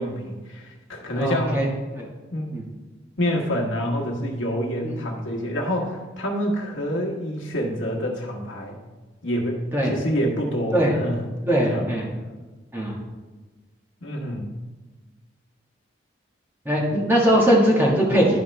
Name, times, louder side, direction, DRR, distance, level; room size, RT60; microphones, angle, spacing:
voice 1, 0.0-1.6 2.3-2.5 3.2-8.8 9.2-11.2 11.7-11.9 14.0-14.5, equal, 90° left, -1 dB, 1.5 m, -27 dB
voice 2, 1.1-1.7 2.0-2.1 2.5-2.6 4.8-4.9 9.7-9.9 10.7-10.9 11.5-12.0 12.7-12.9 16.6-18.4, equal, 10° right, -4 dB, 1.6 m, -20 dB
11.5 x 5.2 x 3.3 m, 1.2 s
head